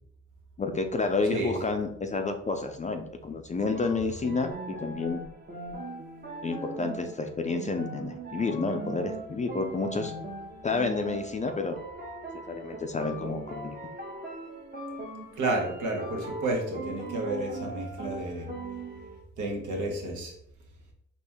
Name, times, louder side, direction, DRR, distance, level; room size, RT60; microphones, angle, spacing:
voice 1, 0.6-5.2 6.4-10.1 10.6-11.8 12.5-13.7, left 3 dB, 25° left, 5 dB, 0.4 m, -30 dB
sound 1, 3.6-19.2, right 2 dB, 30° right, 1.0 m, -40 dB
voice 2, 15.4-18.5 19.4-20.3, right 2 dB, 75° right, 1 dB, 1.3 m, -31 dB
4.3 x 3.0 x 3.5 m, 0.73 s
cardioid pair, 90°, 30 cm